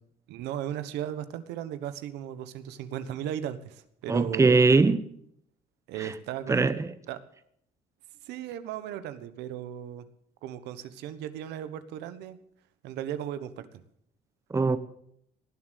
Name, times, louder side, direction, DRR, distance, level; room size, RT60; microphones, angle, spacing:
voice 1, 0.3-4.6 5.9-6.7 7.1-7.2 8.2-10.0 10.4-12.4 12.8-13.8, right 10 dB, 85° right, 1.2 m, -36 dB
voice 2, 4.1-5.0 6.0-6.1 6.5-6.9 14.5-14.8, right 3 dB, 15° right, 1.0 m, -21 dB
18.0 x 7.6 x 8.3 m
cardioid pair, 110°, 17 cm